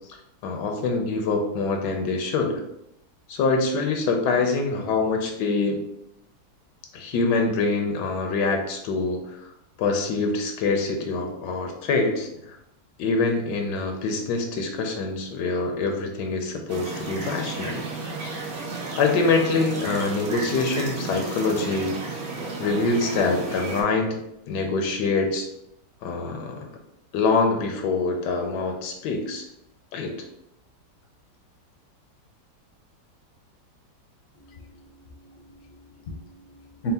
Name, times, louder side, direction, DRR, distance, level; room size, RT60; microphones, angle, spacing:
voice 1, 0.4-2.6 3.3-5.8 6.9-9.5 9.8-12.6 13.0-17.8 18.9-22.0 22.6-24.2 24.5-25.5 26.0-26.6 27.1-29.4 29.9-30.2, left 3 dB, 75° left, 4 dB, 1.2 m, -25 dB
sound 1, 16.7-23.8, right 3 dB, 50° right, 0.7 m, -33 dB
voice 2, 34.3-36.9, left 3 dB, 60° left, 2 dB, 0.9 m, -39 dB
4.3 x 2.1 x 4.0 m, 0.81 s
omnidirectional pair, 1.9 m